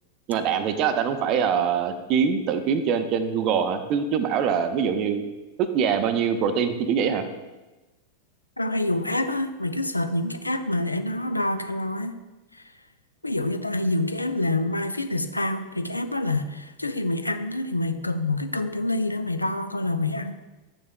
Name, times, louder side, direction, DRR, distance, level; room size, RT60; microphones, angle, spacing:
voice 1, 0.3-5.2 5.6-7.3, right 7 dB, 40° right, 9 dB, 0.5 m, -24 dB
voice 2, 8.6-12.2 12.5-12.6 13.2-20.4, left 2 dB, 85° left, 9 dB, 0.4 m, -27 dB
8.5 x 6.4 x 2.2 m, 1.1 s
figure-of-eight pair, 90°, 0 cm